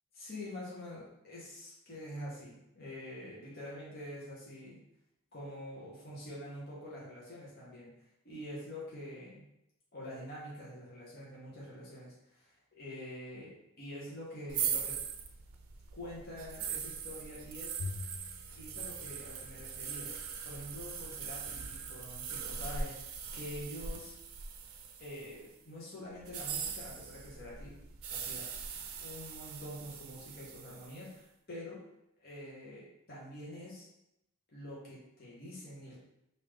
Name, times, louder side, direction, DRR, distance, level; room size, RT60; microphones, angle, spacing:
voice 1, 0.1-4.8 5.3-7.9 8.2-9.4 9.9-15.0 15.9-17.8 18.6-24.2 25.0-27.7 28.1-28.5 29.0-31.8 32.2-33.9 34.5-36.0, left 1 dB, 45° left, -7 dB, 1.0 m, -46 dB
sound 1, 14.5-25.5 26.2-31.0, right 6 dB, 80° right, 0.4 m, -41 dB
Bowed string instrument, 17.8-20.3, left 3 dB, 85° left, 0.4 m, -45 dB
3.5 x 2.7 x 3.2 m, 0.83 s
head